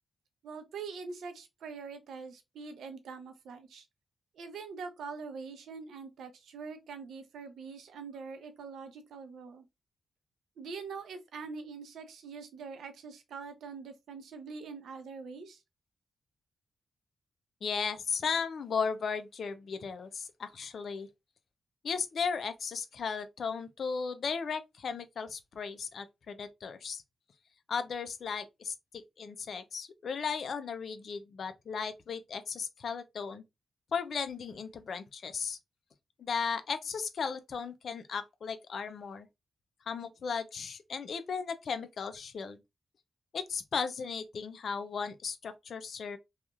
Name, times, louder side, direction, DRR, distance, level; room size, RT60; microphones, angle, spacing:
voice 1, 0.4-3.9 4.3-9.7 10.6-15.6, right 5 dB, 90° right, 0.6 m, -44 dB
voice 2, 17.6-21.1 21.8-27.0 27.7-33.4 33.9-35.6 36.2-39.3 39.9-42.6 43.3-46.2, left 5 dB, 70° left, 0.5 m, -36 dB
2.8 x 2.4 x 2.4 m
cardioid pair, 65°, 0 cm